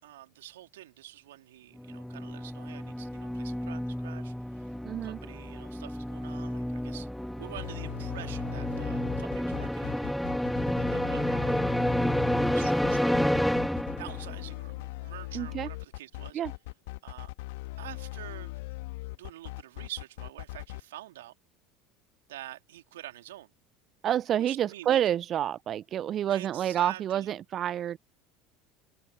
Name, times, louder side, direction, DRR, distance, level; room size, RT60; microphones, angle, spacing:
voice 1, 0.0-7.1 7.4-10.1 10.5-12.0 12.5-16.4 17.0-17.3 17.8-18.5 19.1-21.3 22.3-23.5 24.4-25.0 26.3-27.3, right 14 dB, 75° right, 3.0 m, -47 dB
sound 1, 1.8-14.4, equal, ahead, 1.5 m, -30 dB
voice 2, 4.8-5.2 15.3-15.7 16.3-16.5 24.0-28.0, right 10 dB, 45° right, 0.3 m, -28 dB
sound 2, 7.6-20.8, left 21 dB, 70° left, 1.3 m, -39 dB
hypercardioid pair, 75°, 0 cm